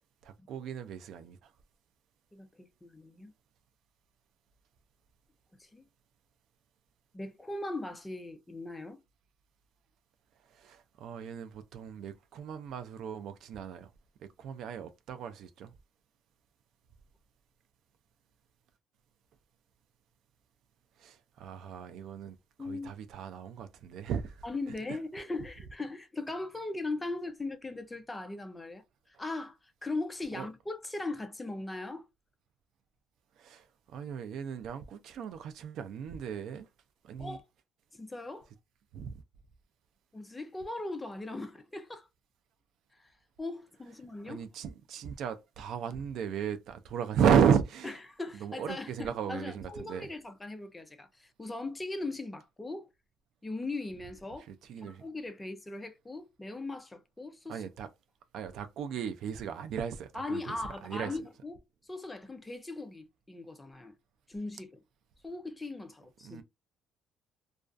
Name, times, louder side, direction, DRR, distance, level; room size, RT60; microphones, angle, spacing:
voice 1, 0.2-1.5 10.5-13.9 14.2-15.7 21.0-24.4 30.3-30.5 33.4-36.7 37.0-37.4 38.9-39.2 44.2-47.9 48.4-50.1 54.5-55.0 57.5-57.9 58.3-60.6 60.8-61.1 66.2-66.4, right 7 dB, 60° right, 0.3 m, -34 dB
voice 2, 2.3-3.3 5.6-5.9 7.1-9.0 22.6-22.9 24.4-32.1 37.2-37.4 37.9-38.5 40.1-42.1 42.9-43.1 43.4-44.5 47.8-52.9 53.4-54.5 54.8-57.6 60.1-64.0 64.3-64.8 65.2-66.4, left 2 dB, 10° left, 0.3 m, -39 dB
2.3 x 2.3 x 2.4 m
cardioid pair, 140°, 0 cm